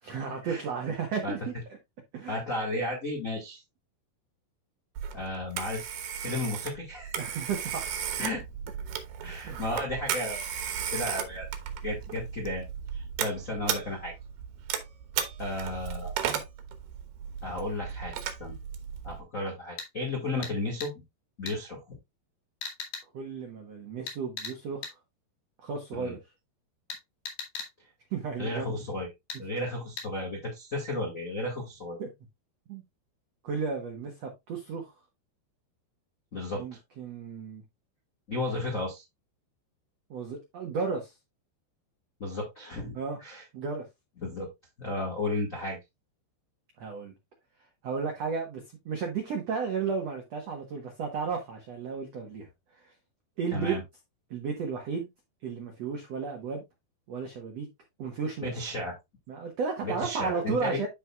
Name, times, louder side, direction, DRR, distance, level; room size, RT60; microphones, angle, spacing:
voice 1, 0.0-1.5 2.1-2.4 7.2-8.0 9.4-9.6 23.1-25.0 25.6-26.2 28.1-28.8 32.0-32.1 32.7-32.8 33.4-34.9 36.5-37.6 40.1-41.1 42.9-43.2 43.5-43.8 46.8-47.1 47.8-52.5 52.7-52.9 53.4-53.7 54.3-55.1 55.4-56.6 57.1-57.7 58.0-58.5 59.3-60.9, right 5 dB, 90° right, 1.4 m, -33 dB
voice 2, 2.3-3.6 5.1-5.9 6.1-7.1 8.2-8.4 9.2-10.4 10.9-11.5 11.8-12.6 12.9-14.1 15.4-16.1 17.4-18.1 18.4-18.6 19.0-21.0 21.4-21.9 25.9-26.2 28.4-29.1 29.4-32.0 36.3-36.8 38.3-39.0 42.2-43.4 44.2-44.5 44.8-45.8 53.5-53.8 58.4-58.9 59.8-60.8, left 2 dB, 90° left, 0.7 m, -33 dB
Telephone, 5.0-19.2, right 8 dB, 70° right, 2.8 m, -35 dB
sound 1, 19.8-19.9 20.4-20.6 20.8-20.9 21.5-21.6 22.6-23.1 24.1-24.6 24.8-25.0 26.9-27.7 29.3-29.4 30.0-30.1, left 5 dB, 65° left, 3.9 m, -38 dB
13.0 x 4.5 x 2.3 m
omnidirectional pair, 5.0 m